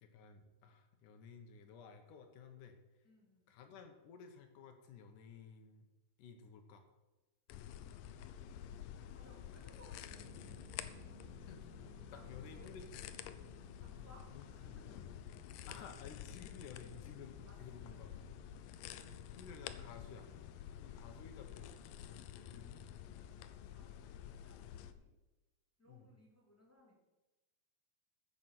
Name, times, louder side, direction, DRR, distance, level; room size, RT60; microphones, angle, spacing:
voice 1, 0.0-2.8 3.5-5.9 6.2-6.8 11.5-13.0 14.3-14.4 15.7-18.1 18.8-20.3 20.8-21.7 22.1-22.8 25.9-26.1, left 6 dB, 70° left, 6 dB, 2.1 m, -55 dB
voice 2, 3.0-3.5 7.8-8.0 9.1-10.7 12.1-12.7 13.7-15.0 15.7-16.1 17.4-18.3 23.7-25.1 25.8-27.0, equal, 5° left, -2 dB, 1.9 m, -64 dB
sound 1, 7.5-24.9, left 10 dB, 90° left, 1.9 m, -50 dB
sound 2, 10.1-23.3, right 10 dB, 80° right, 3.0 m, -64 dB
15.0 x 6.6 x 5.8 m, 1.1 s
omnidirectional pair, 4.8 m